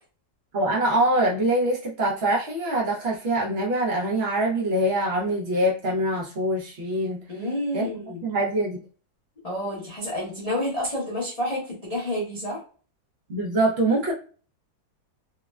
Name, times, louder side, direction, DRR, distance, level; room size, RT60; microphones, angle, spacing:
voice 1, 0.5-7.2 7.7-7.8 8.2-8.8 13.3-14.1, right 1 dB, 85° right, -4 dB, 0.5 m, -24 dB
voice 2, 7.3-8.2 9.4-12.6, left 1 dB, 45° left, -6 dB, 0.4 m, -29 dB
3.5 x 2.1 x 2.3 m, 0.39 s
omnidirectional pair, 2.0 m